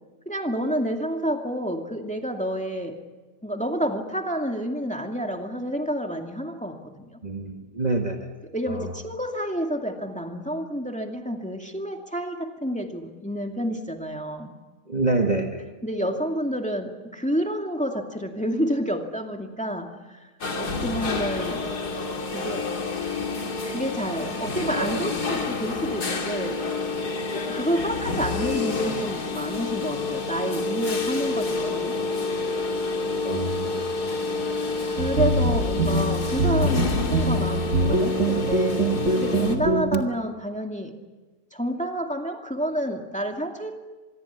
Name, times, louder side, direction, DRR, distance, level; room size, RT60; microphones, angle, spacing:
voice 1, 0.3-3.0 3.4-7.2 8.5-14.5 15.8-20.2 20.6-21.6 22.3-22.7 23.6-26.6 27.3-32.0 34.9-40.9 41.5-43.8, equal, 5° left, 3 dB, 2.3 m, -29 dB
voice 2, 7.2-8.3 8.7-8.9 14.9-15.6 33.2-33.9, right 2 dB, 25° right, 2 dB, 1.7 m, -27 dB
sound 1, 20.4-39.6, left 3 dB, 75° left, 2.9 m, -28 dB
sound 2, 35.0-40.0, right 1 dB, 45° right, 1.7 m, -24 dB
25.5 x 22.0 x 8.3 m, 1.2 s
omnidirectional pair, 1.7 m